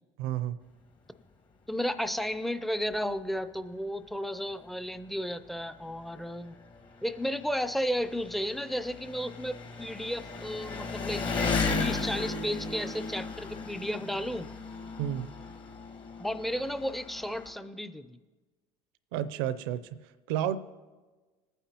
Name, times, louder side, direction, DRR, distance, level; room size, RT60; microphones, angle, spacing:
voice 1, 0.2-0.6 15.0-15.3 19.1-19.8 20.3-20.6, right 11 dB, 80° right, 14 dB, 0.6 m, -30 dB
voice 2, 1.7-6.6 7.0-11.3 11.8-14.5 16.2-18.2, equal, ahead, 11 dB, 0.5 m, -33 dB
Engine, 2.9-3.0 3.4-3.5 4.5-4.6 4.8-17.5, left 4 dB, 40° left, 1.5 m, -36 dB
20.0 x 9.1 x 3.0 m, 1.3 s
supercardioid pair, 95°, 12 cm